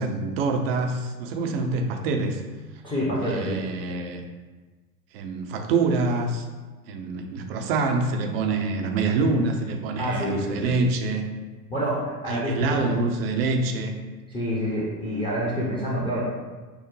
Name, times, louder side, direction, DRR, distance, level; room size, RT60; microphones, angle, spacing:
voice 1, 0.0-2.4 3.2-4.2 5.1-6.5 6.9-11.3 12.3-13.9, right 3 dB, 40° right, 4 dB, 0.5 m, -26 dB
voice 2, 2.8-3.6 10.0-10.7 11.7-12.9 14.3-16.2, equal, 10° left, -7 dB, 0.6 m, -27 dB
5.8 x 2.1 x 3.1 m, 1.3 s
figure-of-eight pair, 95°, 50 cm